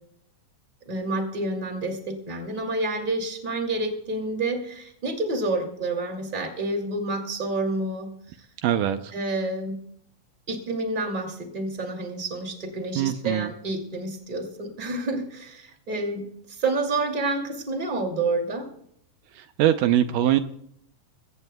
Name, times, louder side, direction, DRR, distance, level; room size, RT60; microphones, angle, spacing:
voice 1, 0.9-8.5 9.1-9.8 10.5-18.7, right 2 dB, 15° right, 3 dB, 2.1 m, -29 dB
voice 2, 8.6-9.1 13.0-13.5 19.3-20.4, right 12 dB, 80° right, 9 dB, 2.2 m, -22 dB
22.0 x 17.0 x 2.3 m, 0.68 s
omnidirectional pair, 3.9 m